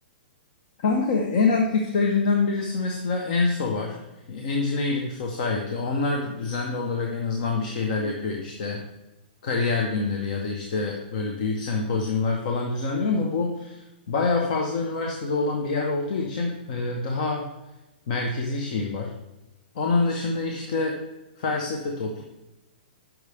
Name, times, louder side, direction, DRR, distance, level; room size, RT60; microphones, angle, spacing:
voice 1, 0.8-4.0 4.3-8.8 9.4-17.5 18.1-19.1 19.7-21.0 21.4-22.2, left 3 dB, 45° left, 1 dB, 0.8 m, -26 dB
7.9 x 5.9 x 3.4 m, 0.99 s
hypercardioid pair, 165°, 6 cm